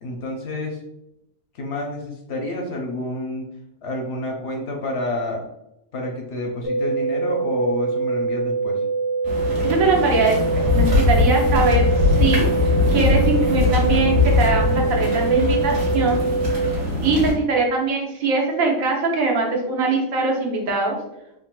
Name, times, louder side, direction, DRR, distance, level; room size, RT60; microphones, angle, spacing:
voice 1, 0.0-0.8 1.5-3.5 3.8-5.5 5.9-8.8, left 1 dB, 65° left, 1 dB, 0.7 m, -29 dB
sound 1, 6.6-16.6, right 4 dB, 30° right, 0.5 m, -24 dB
sound 2, 9.2-17.3, left 3 dB, 45° right, 1.0 m, -21 dB
voice 2, 9.6-16.2 17.0-21.0, right 3 dB, 80° right, 0 dB, 1.2 m, -22 dB
3.6 x 2.5 x 2.2 m, 0.85 s
omnidirectional pair, 1.4 m